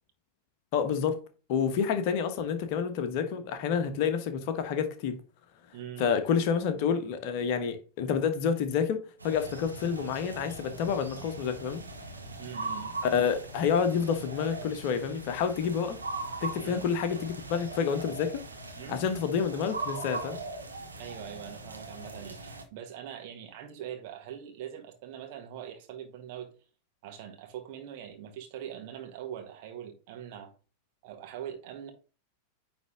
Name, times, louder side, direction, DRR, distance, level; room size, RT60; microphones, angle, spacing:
voice 1, 0.7-1.2 1.5-5.2 6.0-11.8 13.0-16.0 16.4-18.5 18.9-20.4, left 7 dB, 45° left, 1.1 m, -29 dB
voice 2, 5.7-6.1 12.4-13.0 16.6-16.8 18.7-19.0 21.0-26.5 27.0-30.5 31.0-31.9, right 10 dB, 50° right, 1.6 m, -42 dB
sound 1, 9.2-22.6, right 2 dB, 80° right, 1.2 m, -40 dB
9.6 x 3.6 x 3.7 m
figure-of-eight pair, 90°, 0 cm